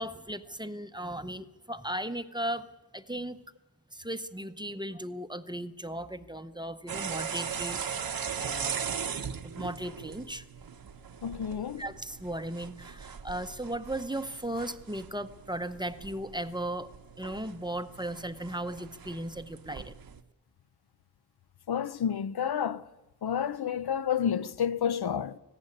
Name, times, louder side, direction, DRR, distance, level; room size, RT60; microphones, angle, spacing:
voice 1, 0.0-2.7 2.9-3.4 3.9-8.8 9.4-10.4 11.5-16.9 17.2-20.0, right 1 dB, 10° right, 0.7 m, -36 dB
sound 1, 6.9-20.2, right 7 dB, 60° right, 0.9 m, -39 dB
voice 2, 11.2-11.8 21.7-22.9 23.2-25.4, left 8 dB, 70° left, 0.7 m, -30 dB
18.5 x 16.0 x 9.9 m
wide cardioid pair, 120°, 39 cm